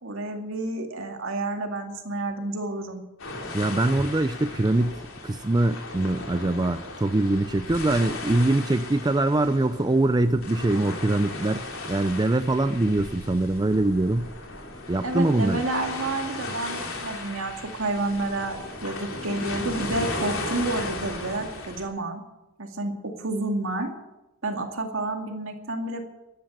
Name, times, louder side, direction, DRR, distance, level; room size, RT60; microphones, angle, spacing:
voice 1, 0.0-3.0 15.0-22.2 22.6-23.9 24.4-26.1, right 2 dB, 70° right, 4 dB, 2.3 m, -30 dB
sound 1, 3.2-21.8, left 2 dB, 75° left, 3.2 m, -36 dB
voice 2, 3.5-5.0 5.2-14.3 14.9-15.6, right 2 dB, 20° right, 10 dB, 0.4 m, -23 dB
13.5 x 10.5 x 8.1 m, 0.98 s
head